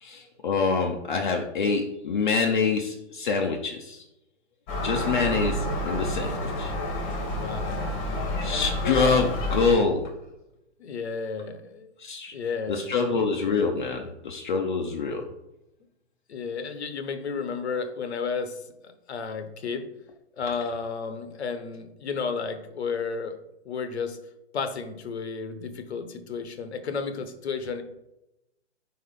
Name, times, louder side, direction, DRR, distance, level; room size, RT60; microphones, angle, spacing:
voice 1, 0.0-4.0 4.8-6.7 8.4-10.1 12.0-12.3 12.7-15.3, left 4 dB, 45° left, 2 dB, 0.6 m, -26 dB
Gull seagull, 4.7-9.7, left 1 dB, 20° left, 1.0 m, -29 dB
voice 2, 7.3-7.8 10.8-11.9 12.3-13.0 16.3-18.6 19.1-19.9 20.4-23.4 23.6-24.2 24.5-27.8, left 5 dB, 65° left, 9 dB, 0.9 m, -32 dB
4.2 x 4.2 x 5.4 m, 0.89 s
hypercardioid pair, 150°, 35 cm